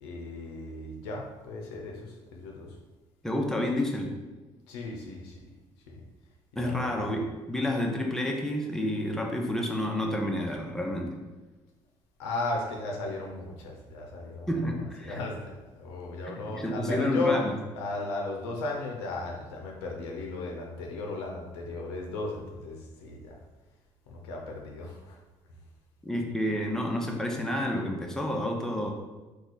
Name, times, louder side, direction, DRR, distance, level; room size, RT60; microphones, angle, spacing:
voice 1, 0.0-2.7 4.7-5.3 6.6-7.1 12.2-14.5 15.0-17.4 17.8-23.3 24.1-25.2, left 2 dB, 85° left, 0 dB, 0.5 m, -35 dB
voice 2, 3.2-4.1 6.5-11.2 14.5-15.2 16.3-17.6 26.0-28.9, left 1 dB, 5° left, 0 dB, 0.7 m, -30 dB
2.9 x 2.3 x 3.9 m, 1.2 s
hypercardioid pair, 55°, 13 cm